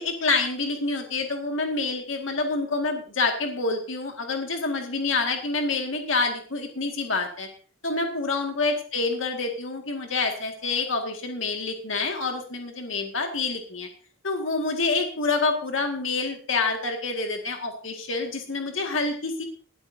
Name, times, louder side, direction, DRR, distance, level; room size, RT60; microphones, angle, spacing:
voice 1, 0.0-7.5 7.8-13.9 14.2-19.4, left 3 dB, 85° left, 3 dB, 1.9 m, -27 dB
19.5 x 12.5 x 2.7 m, 0.41 s
head